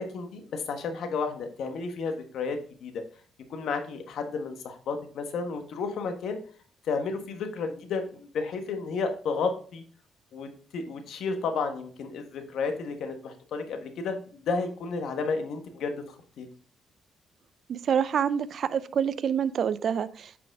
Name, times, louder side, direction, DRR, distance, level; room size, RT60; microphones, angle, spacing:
voice 1, 0.0-3.0 3.5-6.4 6.9-9.8 10.3-16.5, left 4 dB, 70° left, 1.3 m, -32 dB
voice 2, 17.7-20.4, right 8 dB, 60° right, 0.4 m, -27 dB
8.5 x 5.1 x 3.5 m
cardioid pair, 90°, 0 cm